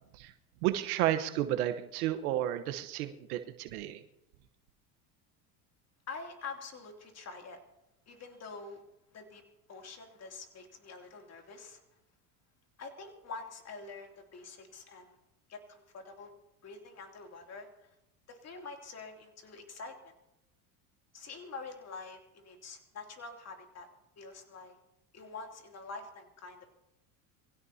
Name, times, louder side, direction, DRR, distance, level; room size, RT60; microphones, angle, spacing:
voice 1, 0.6-4.0, right 13 dB, 80° right, 8 dB, 1.2 m, -32 dB
voice 2, 6.1-7.6 8.1-8.8 9.1-9.4 9.7-11.8 12.8-15.2 15.5-16.3 16.6-17.9 18.3-20.1 21.1-23.9 24.2-24.8 25.1-26.7, left 4 dB, 35° left, 3 dB, 3.0 m, -46 dB
23.5 x 16.5 x 2.8 m, 0.89 s
supercardioid pair, 100°, 43 cm